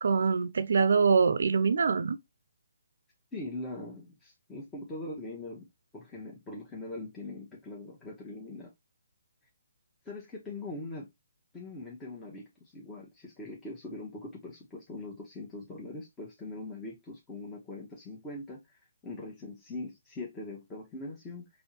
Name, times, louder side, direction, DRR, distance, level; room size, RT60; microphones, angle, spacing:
voice 1, 0.0-2.2, right 5 dB, 65° right, 0.5 m, -24 dB
voice 2, 3.3-8.7 10.0-11.1 11.5-21.5, left 2 dB, 15° left, 1.0 m, -42 dB
4.5 x 2.7 x 3.0 m
hypercardioid pair, 150°, 0 cm